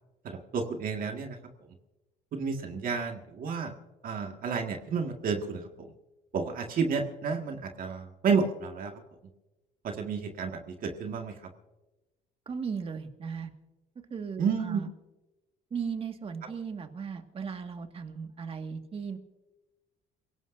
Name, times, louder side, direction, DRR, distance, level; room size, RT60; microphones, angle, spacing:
voice 1, 0.2-1.4 2.3-3.7 4.0-5.9 6.3-8.9 9.8-11.4 14.4-14.8, right 5 dB, 55° right, 3 dB, 1.9 m, -31 dB
voice 2, 12.5-13.5 14.1-14.9 15.7-19.2, right 6 dB, 35° right, 5 dB, 1.9 m, -37 dB
28.0 x 18.0 x 2.6 m, 1.1 s
cardioid pair, 110°, 17 cm